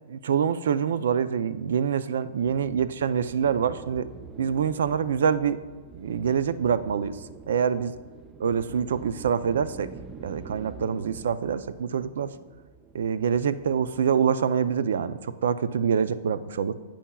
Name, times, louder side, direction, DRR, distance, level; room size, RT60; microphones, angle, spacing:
voice 1, 0.1-4.1 4.4-5.6 5.9-7.2 7.5-7.9 8.4-9.9 10.2-12.3 12.9-16.7, right 7 dB, 85° right, 14 dB, 0.4 m, -25 dB
sound 1, 2.4-14.1, right 5 dB, 15° right, 0.3 m, -46 dB
11.0 x 8.5 x 2.3 m, 1.4 s
supercardioid pair, 165°, 0 cm